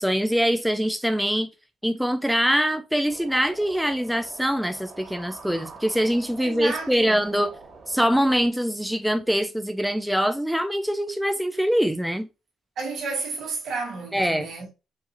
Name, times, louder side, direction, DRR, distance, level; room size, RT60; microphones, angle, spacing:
voice 1, 0.0-1.5 1.8-7.5 7.9-12.3 14.1-14.5, equal, ahead, 0.4 m, -23 dB
sound 1, 3.1-8.5, right 3 dB, 40° right, 1.9 m, -45 dB
voice 2, 6.4-7.3 12.8-14.7, right 4 dB, 70° right, 1.6 m, -32 dB
4.5 x 2.8 x 2.7 m
cardioid pair, 90°, 0 cm